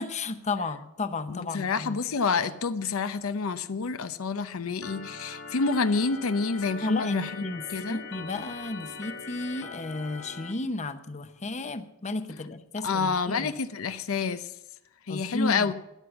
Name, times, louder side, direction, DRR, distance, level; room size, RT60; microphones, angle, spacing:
voice 1, 0.0-2.0 6.8-13.5 15.1-15.7, left 2 dB, 35° left, 10 dB, 0.8 m, -33 dB
voice 2, 1.3-7.3 7.7-8.0 12.8-14.5 15.1-15.7, left 4 dB, 85° left, 12 dB, 0.7 m, -28 dB
Organ, 4.8-10.5, left 4 dB, 65° left, 1.5 m, -41 dB
12.5 x 10.0 x 7.0 m, 0.88 s
head